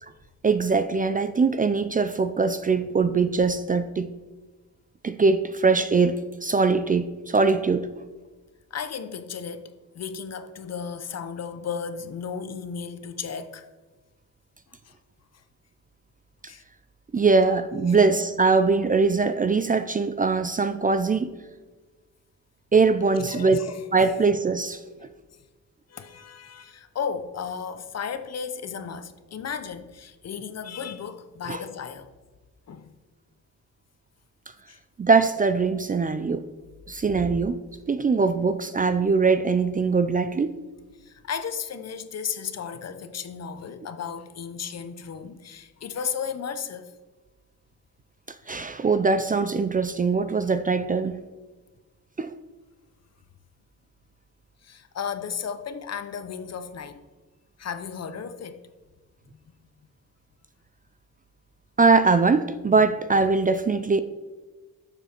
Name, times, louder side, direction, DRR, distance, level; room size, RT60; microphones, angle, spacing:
voice 1, 0.4-4.1 5.0-7.9 17.1-21.4 22.7-24.8 31.5-31.6 35.0-36.5 36.9-37.6 37.9-40.6 48.5-51.2 52.2-52.3 61.8-64.0, right 4 dB, 25° right, 0.4 m, -22 dB
voice 2, 8.7-9.7 9.9-13.7 14.8-14.9 16.5-16.6 17.1-17.2 17.9-18.0 23.2-24.1 25.3-25.4 25.9-32.1 32.7-32.9 34.7-34.8 41.0-46.9 54.6-57.0 57.6-58.6 62.7-62.8, left 7 dB, 50° left, 0.9 m, -34 dB
12.5 x 7.2 x 4.4 m
wide cardioid pair, 130°, 33 cm